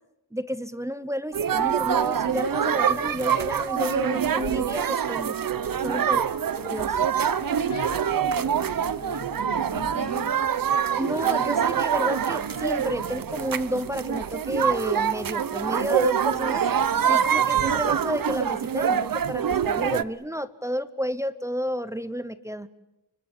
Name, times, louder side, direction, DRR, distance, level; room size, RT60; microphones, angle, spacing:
voice 1, 0.3-5.4 5.8-6.2 6.5-7.0 11.0-16.7 17.1-22.7, equal, 5° right, 13 dB, 0.9 m, -31 dB
sound 1, 1.3-20.0, right 8 dB, 55° right, 0.9 m, -25 dB
voice 2, 5.7-6.2 7.4-10.4, left 4 dB, 45° left, 9 dB, 2.4 m, -40 dB
30.0 x 24.5 x 7.3 m, 0.95 s
wide cardioid pair, 145°, 41 cm